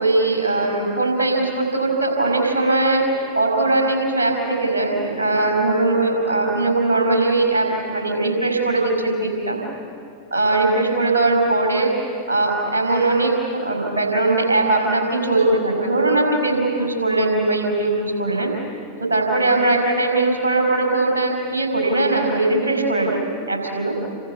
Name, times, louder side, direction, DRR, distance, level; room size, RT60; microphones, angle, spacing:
voice 1, 0.0-9.6 10.3-11.9 12.3-18.5 19.0-23.2 23.5-23.9, right 2 dB, 70° right, 2 dB, 6.0 m, -20 dB
29.0 x 25.0 x 7.1 m, 2.5 s
figure-of-eight pair, 90°, 0 cm